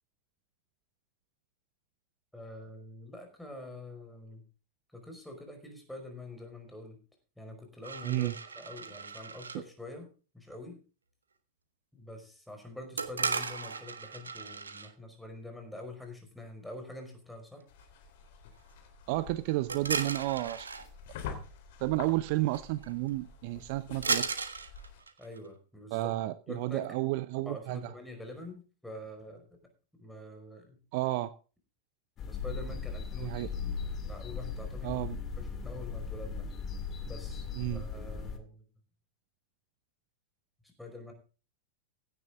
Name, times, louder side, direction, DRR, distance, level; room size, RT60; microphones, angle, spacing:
voice 1, 2.3-4.4 4.9-7.0 7.4-8.3 8.5-10.1 10.3-10.8 11.9-17.6 25.2-26.1 26.5-26.9 27.4-29.4 30.0-30.8 32.3-33.7 34.1-35.0 35.4-36.5 37.0-38.6 40.8-41.1, left 1 dB, 5° left, 3 dB, 5.1 m, -46 dB
sound 1, 7.8-9.6 13.0-14.9 19.7-20.9 22.5-22.6 22.8-23.1 24.0-25.5, right 5 dB, 75° right, 1.5 m, -35 dB
voice 2, 8.0-8.3 19.1-20.7 21.8-24.3 25.9-27.9 30.9-31.3 33.2-33.5 34.8-35.2 37.5-37.9, right 18 dB, 50° right, 15 dB, 0.7 m, -31 dB
sound 2, 17.7-25.0, left 6 dB, 50° left, 3.7 m, -47 dB
sound 3, 32.2-38.4, left 5 dB, 30° left, 2.2 m, -38 dB
16.5 x 10.5 x 3.7 m, 0.35 s
figure-of-eight pair, 90°, 0 cm